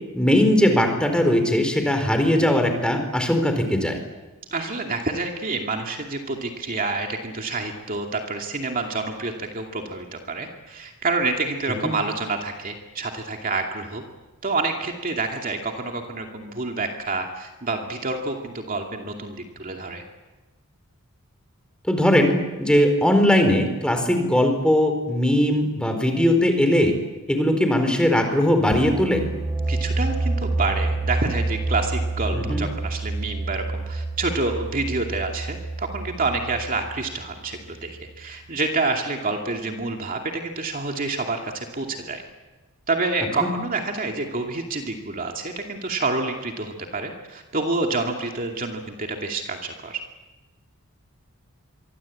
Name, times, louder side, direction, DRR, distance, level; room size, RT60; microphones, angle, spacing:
voice 1, 0.1-4.0 11.8-11.9 21.9-26.9 27.3-29.2 32.3-32.6 43.4-43.5, left 1 dB, 5° left, 5 dB, 4.3 m, -20 dB
voice 2, 4.5-14.0 14.4-20.0 29.7-42.2 42.9-50.0, right 3 dB, 40° right, 2 dB, 2.5 m, -28 dB
sound 1, 28.7-38.3, right 2 dB, 15° right, 3.6 m, -28 dB
26.0 x 24.0 x 8.7 m, 1.1 s
head